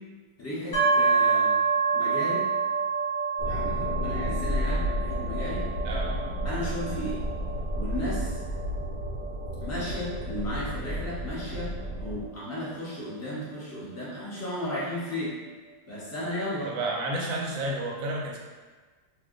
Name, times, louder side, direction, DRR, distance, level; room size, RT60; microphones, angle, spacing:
voice 1, 0.4-1.5 1.9-2.4 3.4-5.7 6.4-7.2 7.7-8.4 9.6-15.4 15.9-16.7, equal, 20° left, -9 dB, 0.4 m, -34 dB
sound 1, 0.7-14.4, right 5 dB, 50° left, 1.0 m, -29 dB
sound 2, 3.4-12.3, equal, 85° left, 1.2 m, -32 dB
voice 2, 5.8-6.3 16.6-18.4, right 2 dB, 70° right, -1 dB, 0.8 m, -31 dB
2.7 x 2.3 x 3.6 m, 1.4 s
omnidirectional pair, 1.8 m